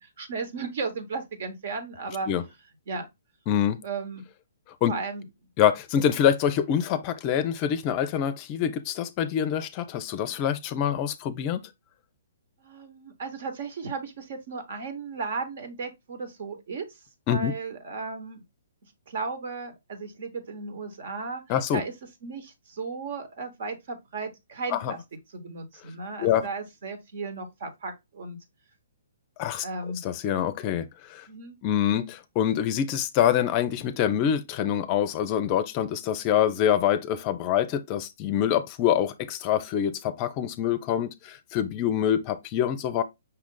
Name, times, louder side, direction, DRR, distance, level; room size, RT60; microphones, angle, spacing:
voice 1, 0.0-2.3 2.9-3.1 3.8-4.3 4.9-5.2 12.6-18.4 18.8-21.4 21.7-21.9 22.2-25.0 25.3-28.4 29.6-30.0 31.3-31.6, right 4 dB, 55° right, 1.1 m, -35 dB
voice 2, 3.5-3.8 4.8-4.9 5.6-11.7 17.3-17.5 21.5-21.8 24.7-24.9 26.2-26.4 29.4-29.7 30.0-31.3 31.6-43.0, left 9 dB, 35° left, 0.5 m, -25 dB
5.7 x 2.4 x 3.7 m
figure-of-eight pair, 130°, 0 cm